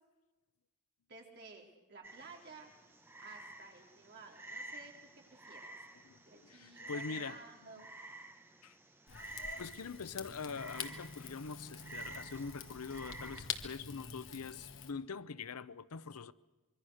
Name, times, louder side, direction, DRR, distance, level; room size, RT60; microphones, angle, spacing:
voice 1, 1.1-2.7 3.2-4.9 5.3-8.0, right 3 dB, 50° right, 4.0 m, -55 dB
Frog, 2.0-13.4, right 2 dB, 10° right, 1.0 m, -50 dB
voice 2, 6.0-7.4 7.8-7.9 8.6-8.8 9.6-16.3, left 5 dB, 85° left, 0.7 m, -44 dB
Rain / Fire, 9.1-14.9, left 6 dB, 55° left, 1.6 m, -46 dB
25.5 x 23.5 x 6.5 m
head